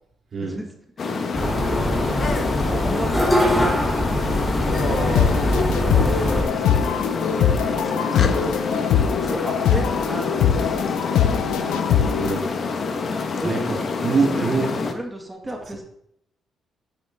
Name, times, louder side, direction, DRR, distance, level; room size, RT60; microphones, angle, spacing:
voice 1, 0.3-0.6 12.2-12.6 13.1-13.6 14.0-14.7, right 4 dB, 50° right, -1 dB, 3.1 m, -24 dB
sound 1, 1.0-14.9, left 4 dB, 50° left, 1.3 m, -27 dB
sound 2, 1.3-6.4, equal, 10° left, 3.2 m, -22 dB
voice 2, 2.7-3.9 4.2-6.9 7.4-8.8 9.2-11.1 13.4-15.8, right 1 dB, 10° right, 1 dB, 1.9 m, -33 dB
sound 3, 4.7-12.4, left 8 dB, 90° left, 0.7 m, -22 dB
10.5 x 8.7 x 3.6 m, 0.73 s
cardioid pair, 90°, 0 cm